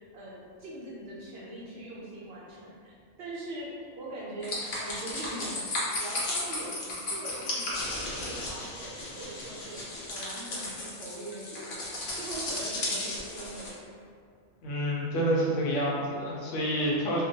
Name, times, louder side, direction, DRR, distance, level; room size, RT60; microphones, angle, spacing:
voice 1, 0.0-7.8 8.1-13.8, right 1 dB, 65° right, -6 dB, 0.7 m, -42 dB
sound 1, 4.4-13.7, left 2 dB, 55° left, 0.7 m, -35 dB
voice 2, 14.6-17.2, equal, 85° left, -4 dB, 1.0 m, -28 dB
2.3 x 2.2 x 2.6 m, 2.2 s
omnidirectional pair, 1.2 m